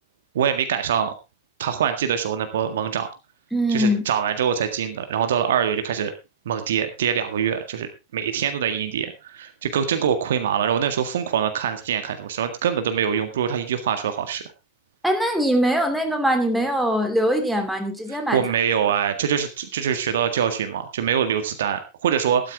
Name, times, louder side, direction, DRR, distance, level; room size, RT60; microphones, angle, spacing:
voice 1, 0.3-1.1 1.6-3.1 3.7-6.1 6.5-14.4 18.3-22.5, right 8 dB, 60° right, 8 dB, 1.7 m, -24 dB
voice 2, 3.5-4.0 15.0-18.4, equal, 5° right, 5 dB, 2.8 m, -22 dB
13.5 x 12.5 x 3.5 m, 0.27 s
figure-of-eight pair, 90°, 0 cm